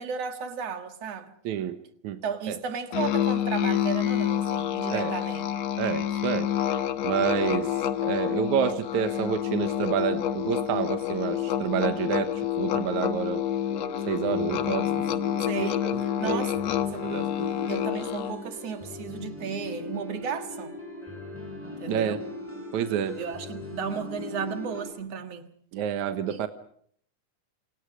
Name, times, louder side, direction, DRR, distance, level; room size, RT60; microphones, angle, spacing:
voice 1, 0.0-1.3 2.2-5.5 15.4-16.5 16.9-17.1 17.7-20.7 21.8-22.2 23.2-25.5 26.3-26.4, right 6 dB, 55° right, 2.7 m, -34 dB
voice 2, 1.4-1.8 2.0-2.2 2.5-2.6 4.9-5.1 5.8-6.5 7.0-7.7 8.0-13.4 14.1-14.9 15.6-16.5 17.0-17.5 21.9-22.2 22.7-23.2 25.7-26.5, right 8 dB, 75° right, 2.5 m, -28 dB
Musical instrument, 2.9-18.5, left 11 dB, 65° left, 2.1 m, -28 dB
sound 1, 13.7-24.9, left 2 dB, 5° right, 6.8 m, -39 dB
28.5 x 28.0 x 5.0 m
omnidirectional pair, 3.6 m